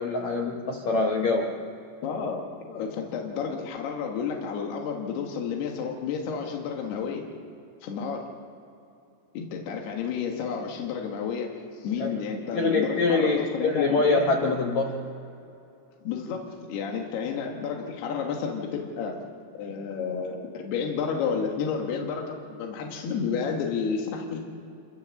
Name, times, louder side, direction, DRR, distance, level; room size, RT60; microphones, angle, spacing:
voice 1, 0.0-1.6 12.0-12.1 12.5-15.0, left 3 dB, 60° left, 0 dB, 2.1 m, -24 dB
voice 2, 2.0-7.2 7.8-8.2 9.4-11.5 11.8-14.3 16.0-16.4 16.7-19.2 19.5-24.4, left 6 dB, 75° left, 1 dB, 3.6 m, -31 dB
26.5 x 13.5 x 7.1 m, 2.7 s
omnidirectional pair, 4.7 m